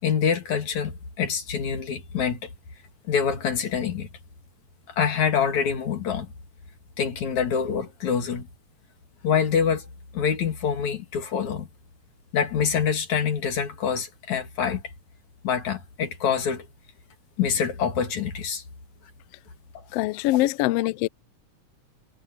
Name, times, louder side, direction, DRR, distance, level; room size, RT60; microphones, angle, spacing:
voice 1, 0.0-2.5 3.1-4.1 5.0-6.3 7.0-8.5 9.2-9.9 10.1-11.7 12.3-14.8 15.4-16.7 17.4-18.6 19.7-19.8, left 7 dB, 70° left, 4.2 m, -25 dB
voice 2, 19.9-21.1, left 17 dB, 90° left, 1.4 m, -23 dB
omnidirectional pair, 3.4 m